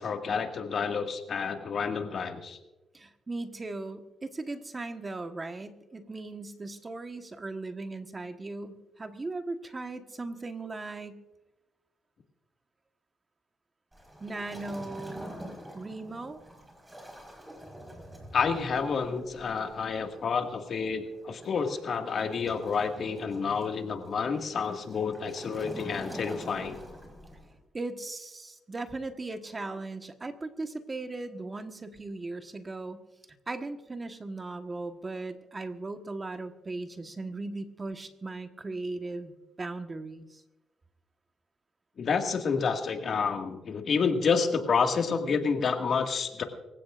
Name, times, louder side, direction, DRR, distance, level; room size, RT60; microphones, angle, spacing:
voice 1, 0.0-2.6 18.3-26.8 42.0-46.4, left 5 dB, 55° left, 4 dB, 1.9 m, -29 dB
voice 2, 2.9-11.2 14.2-15.4 15.7-16.4 27.7-33.0 33.5-40.4, right 2 dB, 25° right, 7 dB, 1.3 m, -38 dB
Waves surf, 13.9-27.6, equal, 10° right, 4.8 m, -47 dB
25.0 x 16.0 x 2.5 m, 1.0 s
cardioid pair, 90°, 0 cm